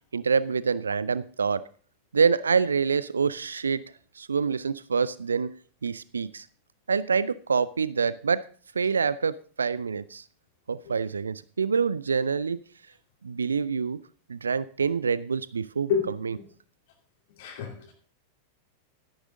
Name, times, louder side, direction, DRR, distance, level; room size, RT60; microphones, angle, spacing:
voice 1, 0.1-1.6 2.1-3.8 4.2-5.5 5.8-6.5 6.9-8.4 8.7-10.2 10.7-12.6 13.2-14.0 14.3-15.9 16.2-16.4, right 5 dB, 75° right, 18 dB, 0.4 m, -26 dB
voice 2, 15.9-16.4 17.4-17.9, left 7 dB, 55° left, 1 dB, 2.4 m, -30 dB
13.0 x 11.0 x 3.7 m, 0.42 s
figure-of-eight pair, 90°, 0 cm